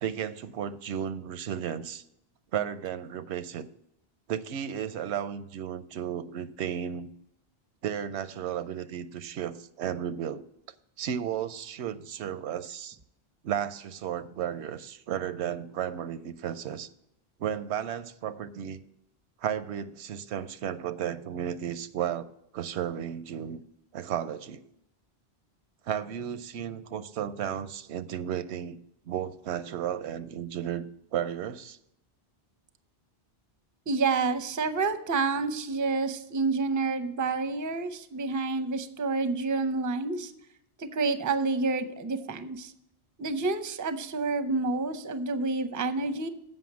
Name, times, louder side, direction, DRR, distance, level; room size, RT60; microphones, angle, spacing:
voice 1, 0.0-2.0 2.5-3.7 4.3-7.1 7.8-10.5 11.0-13.0 13.4-16.9 17.4-18.8 19.4-23.6 23.9-24.6 25.9-28.8 29.1-31.8, right 9 dB, 90° right, 13 dB, 0.9 m, -34 dB
voice 2, 33.9-40.3 40.8-42.7 43.2-46.3, right 3 dB, 25° right, 10 dB, 0.4 m, -29 dB
7.7 x 5.5 x 7.2 m, 0.78 s
omnidirectional pair, 1.1 m